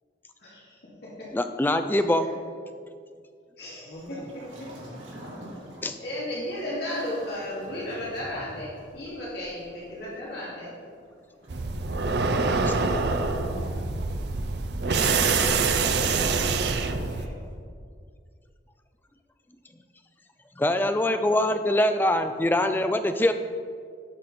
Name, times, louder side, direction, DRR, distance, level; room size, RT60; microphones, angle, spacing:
voice 1, 0.4-1.3 1.8-1.9 3.6-4.4 6.0-10.7 16.7-17.5, left 1 dB, 60° left, -7 dB, 2.4 m, -35 dB
voice 2, 1.3-2.2 5.8-6.0 20.6-23.3, left 1 dB, 10° left, 8 dB, 0.4 m, -23 dB
voice 3, 3.8-4.3 12.3-14.1, equal, 80° left, -3 dB, 1.3 m, -37 dB
Waves surf, 3.9-17.6, equal, 90° right, 2.6 m, -47 dB
sound 1, 11.5-17.3, right 4 dB, 65° right, 0.6 m, -25 dB
11.5 x 6.0 x 4.2 m, 2.2 s
head